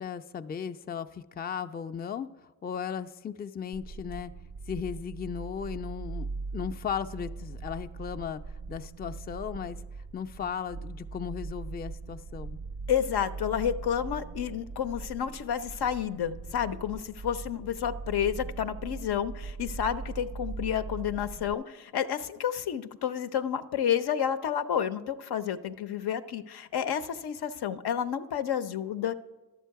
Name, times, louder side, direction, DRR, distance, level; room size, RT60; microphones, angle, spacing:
voice 1, 0.0-2.3 2.6-4.3 4.7-8.4 8.7-9.8 10.1-12.6, left 7 dB, 25° left, 9 dB, 0.4 m, -36 dB
sound 1, 3.7-21.5, right 4 dB, 40° right, 0.4 m, -40 dB
voice 2, 12.9-29.1, left 9 dB, 75° left, 10 dB, 0.6 m, -30 dB
11.0 x 7.3 x 4.6 m, 1.2 s
cardioid pair, 50°, 39 cm